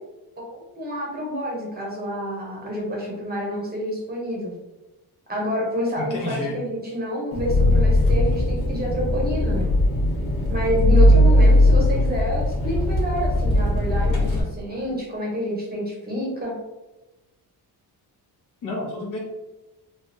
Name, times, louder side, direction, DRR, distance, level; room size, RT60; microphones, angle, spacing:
voice 1, 0.4-4.5 5.3-9.7 10.5-16.5, equal, 25° right, -2 dB, 0.8 m, -28 dB
voice 2, 6.0-6.6 18.6-19.2, left 2 dB, 50° left, -2 dB, 0.9 m, -30 dB
Engine, 7.3-14.4, left 1 dB, 70° left, 1.3 m, -19 dB
3.3 x 2.2 x 2.6 m, 1.0 s
cardioid pair, 145°, 39 cm